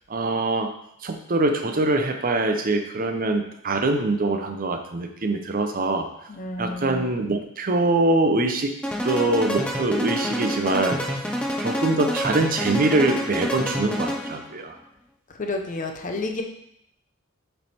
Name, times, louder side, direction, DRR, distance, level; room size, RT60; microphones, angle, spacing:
voice 1, 0.1-0.7 1.0-6.1 6.6-8.7 9.0-11.0 11.6-14.8, right 2 dB, 40° right, 5 dB, 0.6 m, -23 dB
voice 2, 6.3-7.1 15.3-16.4, left 2 dB, 35° left, 3 dB, 0.7 m, -30 dB
sound 1, 8.8-14.5, equal, 5° left, 0.8 m, -28 dB
7.3 x 3.4 x 4.2 m, 0.75 s
head